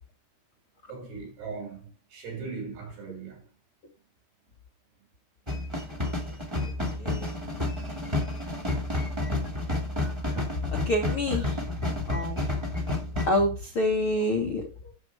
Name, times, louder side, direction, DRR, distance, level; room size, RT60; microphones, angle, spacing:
voice 1, 0.9-3.5 8.2-8.4 10.5-10.7 14.2-14.3, right 4 dB, 75° right, 4.8 m, -40 dB
sound 1, 5.5-13.3, left 2 dB, 15° right, 1.1 m, -30 dB
voice 2, 7.0-7.3 10.7-11.6 12.1-12.5 13.3-15.0, left 1 dB, 80° left, 1.2 m, -27 dB
8.2 x 6.6 x 4.8 m
omnidirectional pair, 4.8 m